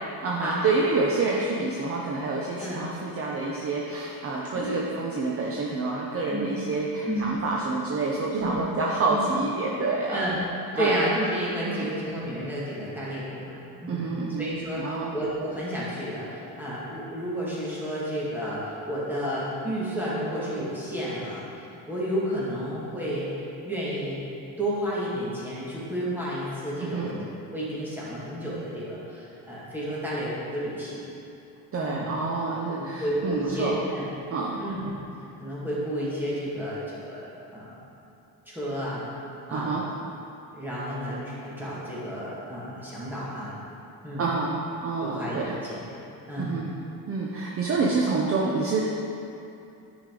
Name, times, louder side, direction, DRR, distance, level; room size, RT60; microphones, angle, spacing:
voice 1, 0.2-10.4 10.7-11.0 11.6-11.9 13.9-14.5 14.8-15.1 26.8-27.1 31.7-33.8 34.3-34.6 39.5-39.8 44.2-45.6 46.4-46.7 47.1-48.8, right 3 dB, 35° right, -3 dB, 0.6 m, -28 dB
voice 2, 7.0-7.3 8.4-8.6 9.1-9.2 10.1-10.4 10.7-14.1 14.4-21.4 21.9-24.2 24.6-27.1 27.5-31.0 31.8-32.1 32.7-34.1 34.6-34.9 35.4-37.7 38.5-39.1 39.5-39.7 40.5-43.6 44.0-44.3 45.0-45.8 46.3-46.5, equal, 5° right, -9 dB, 1.9 m, -31 dB
10.0 x 4.9 x 3.8 m, 2.7 s
cardioid pair, 155°, 39 cm